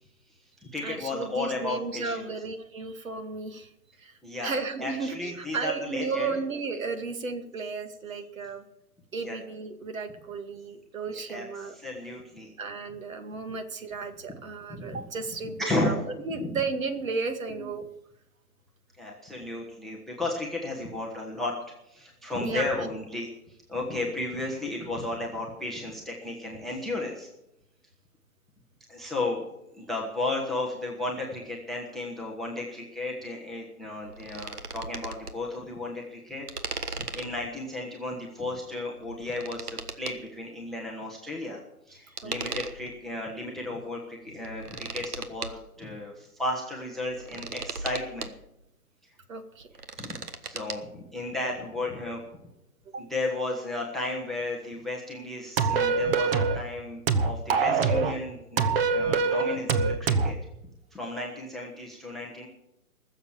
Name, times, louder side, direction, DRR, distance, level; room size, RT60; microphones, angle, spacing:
voice 1, 0.3-2.3 4.2-6.4 9.2-9.4 11.1-12.5 14.7-15.0 15.6-16.0 16.3-16.5 17.6-17.7 19.0-21.6 21.8-27.3 28.9-29.5 29.7-48.3 50.0-52.2 53.0-60.4 60.9-62.5, left 2 dB, ahead, -1 dB, 0.7 m, -34 dB
voice 2, 0.8-3.7 4.0-8.7 9.1-11.8 12.6-16.0 16.2-17.8 22.4-22.8 42.1-42.6 49.3-49.7 52.9-53.1 55.8-55.9, right 4 dB, 60° right, 8 dB, 2.3 m, -34 dB
sound 1, 34.0-35.3 36.5-37.5 39.0-40.2 42.2-43.0 43.6-43.7 44.3-45.6 47.0-48.3 49.6-50.8, right 4 dB, 80° right, 1.5 m, -37 dB
sound 2, 55.6-56.6 57.1-58.2 58.6-60.3, right 5 dB, 40° right, 1.2 m, -24 dB
19.5 x 7.3 x 7.4 m, 0.86 s
figure-of-eight pair, 135°, 45 cm